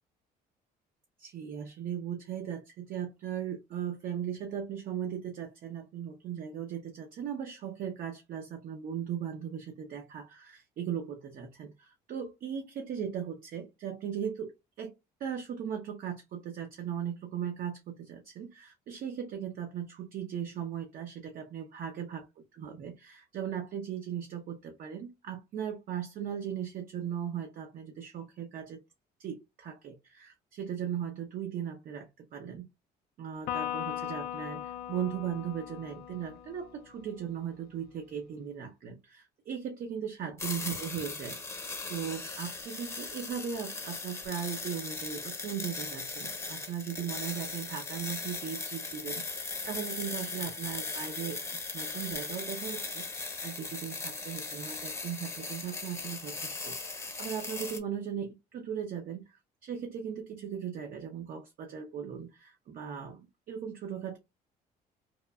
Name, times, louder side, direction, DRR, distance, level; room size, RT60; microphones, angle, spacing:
voice 1, 1.2-14.9 15.2-22.3 22.5-28.8 29.2-32.7 33.2-59.4 59.6-64.2, right 8 dB, 55° right, 0.6 m, -38 dB
Electric guitar, 33.5-37.0, left 12 dB, 65° left, 0.4 m, -38 dB
sound 1, 40.4-57.8, left 3 dB, 15° left, 0.6 m, -38 dB
3.0 x 2.2 x 2.2 m
cardioid pair, 110°, 17 cm